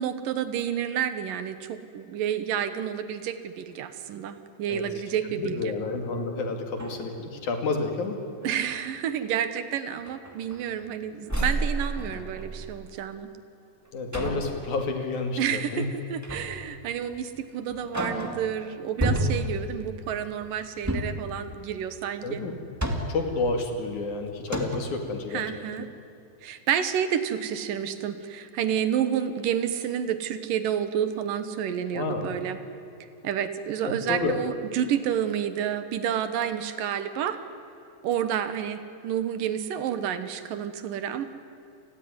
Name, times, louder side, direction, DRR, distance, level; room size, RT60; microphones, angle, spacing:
voice 1, 0.0-5.7 8.4-13.3 15.4-22.4 25.3-25.9 26.4-32.6 33.2-37.4 38.0-41.3, right 9 dB, 75° right, 11 dB, 2.8 m, -30 dB
voice 2, 5.3-8.2 13.9-15.9 22.2-22.6 23.1-25.4 31.9-32.3 33.8-34.4, left 3 dB, 60° left, 4 dB, 3.8 m, -30 dB
sound 1, 6.1-6.2 6.7-7.9 8.4-8.8 9.4-9.6 10.0-10.9 11.3-12.8 14.1-14.6 16.2-16.7 17.1-17.2 17.7-18.5 19.0-19.6 20.8-21.3 22.5-23.3 24.0-24.1 24.5-25.0, right 1 dB, 5° right, 1.7 m, -31 dB
28.5 x 20.0 x 9.7 m, 2.8 s
omnidirectional pair, 4.0 m